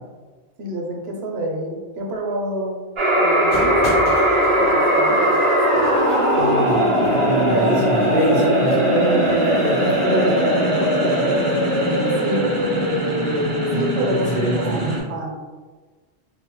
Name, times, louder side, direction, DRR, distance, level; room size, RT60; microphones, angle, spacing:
voice 1, 0.6-2.8 3.1-3.8 4.5-5.3 12.2-12.4 13.7-15.4, right 1 dB, 75° right, 1 dB, 0.8 m, -28 dB
sound 1, 3.0-15.0, equal, 40° right, 0.5 m, -19 dB
sound 2, 3.5-10.0, equal, 50° left, 0.9 m, -35 dB
voice 2, 6.3-11.7 14.0-14.9, equal, 75° left, -6 dB, 1.2 m, -24 dB
2.6 x 2.1 x 2.8 m, 1.4 s
omnidirectional pair, 1.1 m